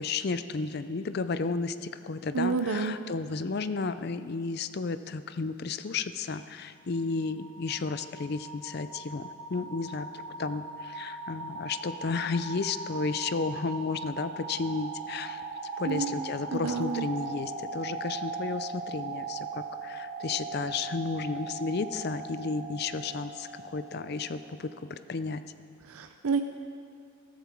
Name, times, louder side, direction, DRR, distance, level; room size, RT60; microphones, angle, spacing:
voice 1, 0.0-15.4 15.8-25.4, left 4 dB, 50° left, 12 dB, 0.5 m, -33 dB
voice 2, 2.3-3.0 15.9-16.1 16.5-17.1 25.9-26.4, right 5 dB, 90° right, 7 dB, 0.6 m, -29 dB
sound 1, 6.8-24.7, right 4 dB, 50° right, 1.0 m, -39 dB
14.0 x 13.5 x 4.5 m, 2.3 s
head